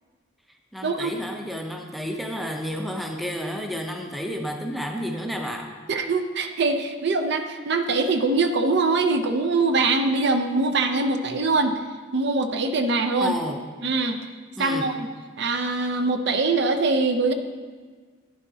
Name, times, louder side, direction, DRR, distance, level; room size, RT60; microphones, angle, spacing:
voice 1, 0.7-5.7 13.2-13.6 14.6-14.9, equal, ahead, 2 dB, 0.6 m, -31 dB
voice 2, 5.9-11.8 12.1-13.3 13.8-14.2 14.6-15.1 15.4-17.3, right 3 dB, 55° right, 7 dB, 0.6 m, -23 dB
11.0 x 9.9 x 2.8 m, 1.5 s
head